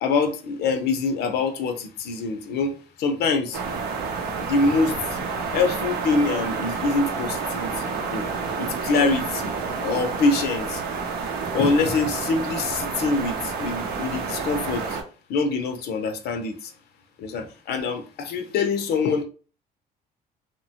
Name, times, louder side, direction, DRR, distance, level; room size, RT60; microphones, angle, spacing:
voice 1, 0.0-3.6 4.4-5.2 5.5-8.3 8.6-10.8 11.5-15.0 15.3-16.7 17.2-19.2, left 4 dB, 75° left, 0.6 m, -25 dB
sound 1, 3.5-15.0, right 5 dB, 70° right, 0.6 m, -29 dB
2.9 x 2.2 x 2.7 m
cardioid pair, 110°, 17 cm